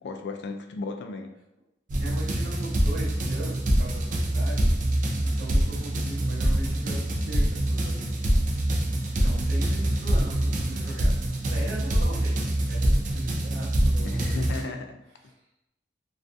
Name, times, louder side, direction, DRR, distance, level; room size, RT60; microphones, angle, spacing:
voice 1, 0.0-1.3 14.0-15.0, left 3 dB, 65° left, 6 dB, 0.3 m, -35 dB
sound 1, 1.9-14.6, right 1 dB, 45° right, 0.4 m, -25 dB
voice 2, 2.0-4.9 5.2-8.1 8.4-8.6 8.8-8.9 9.2-12.4 12.7-14.7 15.2-15.3, right 1 dB, 70° right, -6 dB, 0.8 m, -40 dB
2.6 x 2.3 x 2.4 m, 0.88 s
head